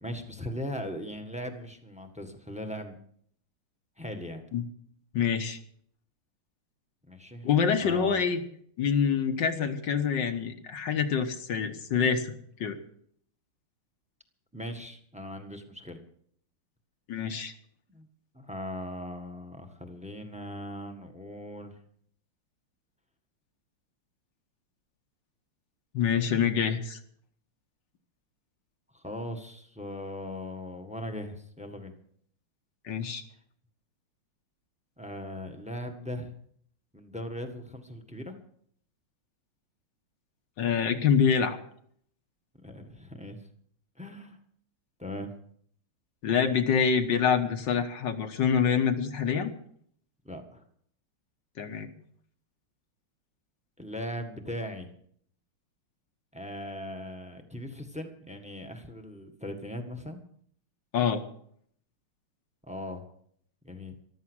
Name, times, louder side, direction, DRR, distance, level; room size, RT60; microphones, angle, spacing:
voice 1, 0.0-3.0 4.0-4.4 7.0-7.5 7.8-8.2 14.5-16.0 17.9-18.1 18.3-21.8 28.9-31.9 35.0-36.3 36.9-38.3 42.6-43.4 44.0-44.4 45.0-45.3 50.2-50.6 53.8-54.9 56.3-60.2 62.7-63.0 63.6-63.9, left 1 dB, 5° right, 6 dB, 1.3 m, -39 dB
voice 2, 5.1-5.6 7.4-8.4 8.8-12.8 17.1-17.5 25.9-27.0 32.9-33.2 40.6-41.6 46.2-49.5 51.6-51.9 60.9-61.2, left 7 dB, 60° left, 8 dB, 1.7 m, -26 dB
14.5 x 12.5 x 6.4 m, 0.64 s
omnidirectional pair, 2.4 m